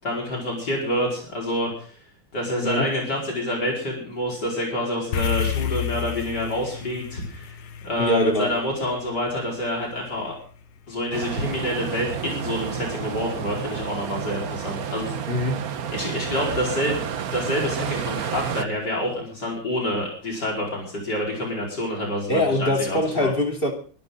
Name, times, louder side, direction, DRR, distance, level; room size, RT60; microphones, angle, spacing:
voice 1, 0.0-2.0 2.3-7.6 7.8-10.4 10.9-15.2 15.9-17.0 17.3-23.3, left 1 dB, 55° left, -2 dB, 5.3 m, -27 dB
sound 1, 5.1-9.6, left 9 dB, 85° left, 2.0 m, -30 dB
voice 2, 8.0-8.5 15.3-15.6 22.3-23.7, left 1 dB, 25° left, 2 dB, 2.8 m, -23 dB
sound 2, 11.1-18.6, right 8 dB, 55° right, 1.3 m, -30 dB
24.0 x 13.5 x 3.9 m, 0.42 s
omnidirectional pair, 2.2 m